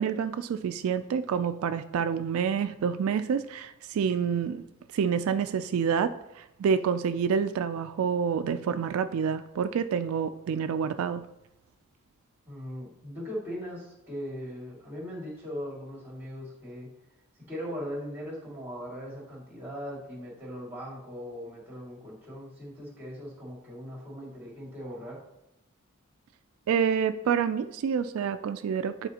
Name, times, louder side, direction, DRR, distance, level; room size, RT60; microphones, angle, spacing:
voice 1, 0.0-4.6 4.9-11.3 26.7-29.1, right 7 dB, 80° right, 10 dB, 0.3 m, -28 dB
voice 2, 12.5-16.9 17.4-25.2, equal, 10° right, -4 dB, 2.1 m, -39 dB
9.1 x 4.1 x 2.8 m, 0.91 s
head